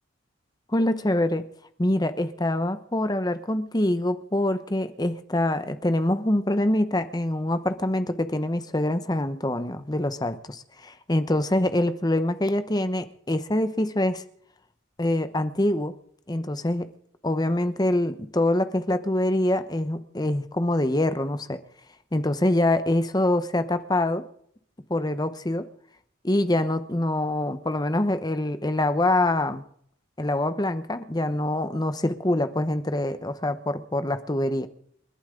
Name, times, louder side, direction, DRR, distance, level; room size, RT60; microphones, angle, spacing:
voice 1, 0.7-1.4 1.8-14.2 15.0-15.9 16.3-16.9 17.2-21.6 22.1-24.2 24.9-25.7 26.2-29.6 30.2-34.7, left 1 dB, 20° left, 0.9 m, -25 dB
30.0 x 11.5 x 3.8 m
head